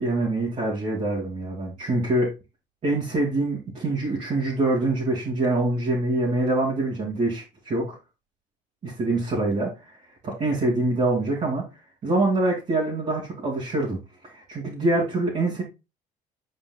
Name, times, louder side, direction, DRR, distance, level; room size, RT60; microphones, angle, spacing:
voice 1, 0.0-2.3 2.8-8.0 8.8-9.9 10.2-11.7 12.0-14.0 14.2-15.6, right 2 dB, 45° right, 2.7 m, -25 dB
9.0 x 4.9 x 2.3 m
cardioid pair, 110°, 17 cm